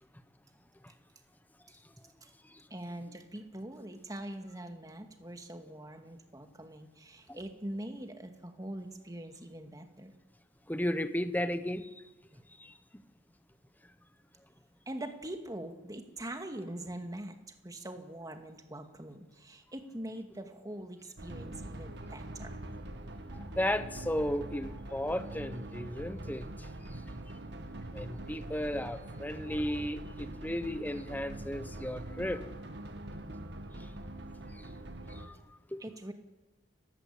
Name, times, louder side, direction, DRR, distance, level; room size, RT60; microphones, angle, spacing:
voice 1, 2.7-10.1 12.3-12.5 14.9-22.6 35.8-36.1, right 1 dB, 20° right, 6 dB, 2.3 m, -43 dB
voice 2, 10.7-11.9 12.6-12.7 23.5-26.5 27.9-32.4 35.1-35.3 35.7-35.8, left 1 dB, 10° left, 11 dB, 1.2 m, -34 dB
sound 1, 21.2-35.3, right 1 dB, 60° right, 1.9 m, -43 dB
29.5 x 16.0 x 8.6 m, 1.1 s
head